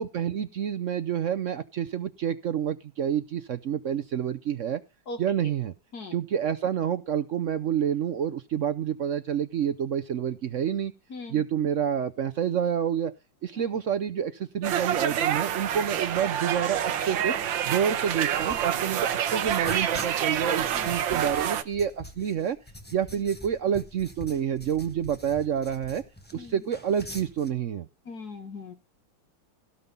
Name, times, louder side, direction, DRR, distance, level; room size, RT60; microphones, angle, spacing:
voice 1, 0.0-4.8 5.2-5.7 6.1-10.9 11.3-13.1 13.4-17.3 17.6-22.6 22.9-26.0 26.3-27.9, right 8 dB, 65° right, 11 dB, 0.7 m, -28 dB
voice 2, 11.1-11.4 13.6-13.7 20.7-20.9 26.4-26.5 28.1-28.7, left 3 dB, 55° left, 6 dB, 2.4 m, -39 dB
sound 1, 14.6-21.6, right 9 dB, 80° right, 1.6 m, -27 dB
sound 2, 18.4-27.5, equal, 5° left, 0.9 m, -45 dB
17.0 x 5.7 x 5.3 m, 0.29 s
omnidirectional pair, 2.1 m